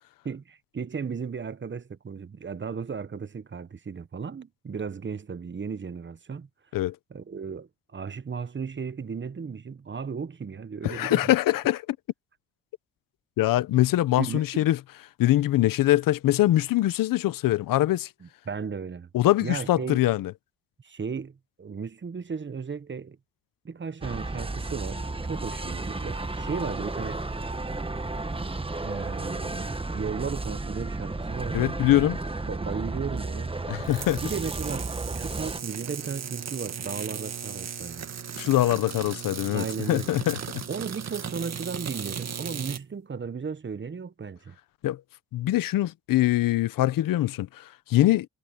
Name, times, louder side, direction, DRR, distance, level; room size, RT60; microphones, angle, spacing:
voice 1, 0.2-6.5 7.1-11.3 14.2-14.7 18.2-19.1 19.4-20.0 20.8-23.2 23.6-27.2 28.8-31.8 32.4-33.6 34.2-38.1 39.5-40.2 40.7-44.6, right 6 dB, 35° right, 1.2 m, -35 dB
voice 2, 10.8-11.8 13.4-14.8 15.2-18.1 19.1-20.3 31.5-32.2 33.7-34.2 38.4-40.6 44.8-45.0 45.3-48.3, left 15 dB, 85° left, 0.9 m, -23 dB
sound 1, 24.0-35.6, right 2 dB, 15° right, 1.6 m, -33 dB
sound 2, 33.8-42.8, right 7 dB, 55° right, 2.1 m, -36 dB
cardioid pair, 70°, 33 cm